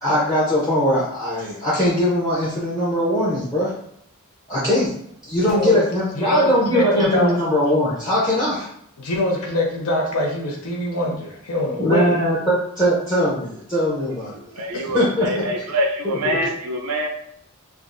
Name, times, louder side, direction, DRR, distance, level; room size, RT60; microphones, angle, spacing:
voice 1, 0.0-3.7 4.5-4.9 5.2-8.7 11.8-14.4 14.9-15.3 16.0-16.4, equal, 15° left, -7 dB, 0.6 m, -20 dB
voice 2, 5.4-5.8 6.1-7.4 9.0-12.1 15.0-15.1, left 1 dB, 85° left, -1 dB, 0.8 m, -23 dB
voice 3, 14.6-17.1, equal, 90° right, 3 dB, 0.5 m, -25 dB
3.3 x 2.3 x 2.5 m, 0.73 s
head